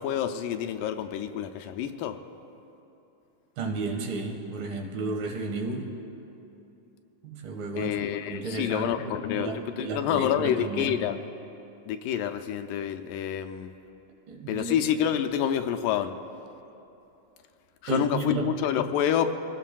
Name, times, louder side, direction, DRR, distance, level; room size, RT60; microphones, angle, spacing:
voice 1, 0.0-2.2 7.8-9.5 9.8-11.2 11.9-13.7 14.5-16.2 17.8-19.3, left 9 dB, 80° left, 7 dB, 2.1 m, -28 dB
voice 2, 3.6-5.9 7.2-11.0 14.3-14.7 17.9-18.5, right 3 dB, 90° right, 1 dB, 3.4 m, -33 dB
24.5 x 18.5 x 2.3 m, 2.9 s
omnidirectional pair, 4.0 m